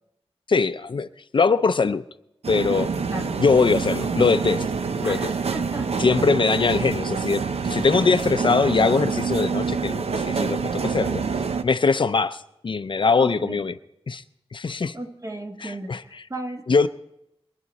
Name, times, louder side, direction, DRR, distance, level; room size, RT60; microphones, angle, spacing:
voice 1, 0.5-2.0 2.5-2.9 3.4-4.6 5.0-5.3 6.0-11.2 11.6-13.7 14.1-14.2 14.5-14.9 15.6-16.0 16.7-16.9, left 4 dB, 55° left, 12 dB, 0.5 m, -22 dB
sound 1, 2.4-11.6, right 5 dB, 90° right, 0.7 m, -26 dB
voice 2, 3.1-3.4 5.0-6.0 13.2-13.7 14.9-16.7, right 1 dB, 30° right, 3 dB, 1.4 m, -35 dB
23.0 x 11.0 x 4.1 m, 0.84 s
wide cardioid pair, 95°, 10 cm